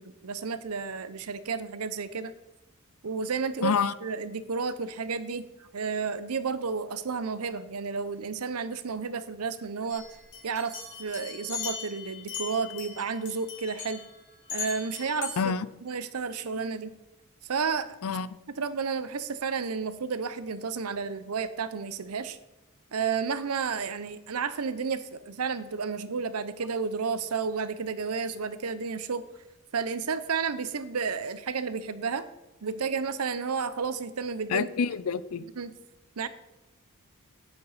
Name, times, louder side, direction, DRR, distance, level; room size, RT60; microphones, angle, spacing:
voice 1, 0.0-2.3 3.0-3.7 4.0-10.0 10.4-14.0 14.5-15.4 15.8-17.0 17.5-18.0 18.6-22.4 22.9-29.3 29.7-32.3 32.6-34.7 35.6-35.7 36.2-36.3, right 5 dB, 85° right, 14 dB, 0.7 m, -31 dB
voice 2, 3.6-3.9 15.4-15.7 18.0-18.4 34.5-35.5, left 6 dB, 80° left, 17 dB, 0.5 m, -27 dB
sound 1, 9.9-13.0 13.3-14.1 14.5-15.4, left 7 dB, 50° left, 2.5 m, -39 dB
9.6 x 9.0 x 4.1 m, 1.0 s
head